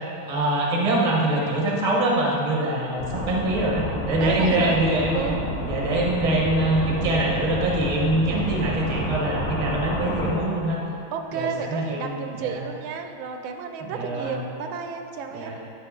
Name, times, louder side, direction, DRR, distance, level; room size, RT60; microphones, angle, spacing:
voice 1, 0.2-5.3 5.7-10.8 11.3-12.6 13.8-14.4 15.3-15.6, right 1 dB, 25° right, -2 dB, 0.8 m, -24 dB
sound 1, 3.0-10.3, left 1 dB, 35° left, 2.3 m, -30 dB
voice 2, 4.2-4.8 5.1-5.4 11.1-15.5, right 6 dB, 80° right, 5 dB, 1.4 m, -32 dB
10.5 x 5.7 x 3.7 m, 2.7 s
omnidirectional pair, 2.2 m